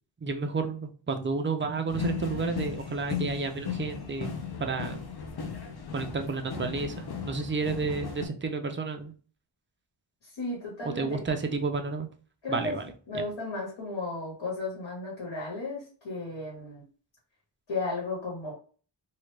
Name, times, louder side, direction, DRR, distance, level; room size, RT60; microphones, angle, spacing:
voice 1, 0.2-4.3 4.6-5.1 5.9-9.1 10.8-12.1 12.5-12.9 13.1-13.2, right 4 dB, 30° right, 6 dB, 0.4 m, -31 dB
sound 1, 1.9-8.3, left 6 dB, 55° left, 0.6 m, -36 dB
voice 2, 10.2-11.2 12.4-12.8 13.1-16.8 17.7-18.5, left 3 dB, 80° left, -5 dB, 1.5 m, -34 dB
3.1 x 2.3 x 3.2 m, 0.39 s
wide cardioid pair, 155°, 45 cm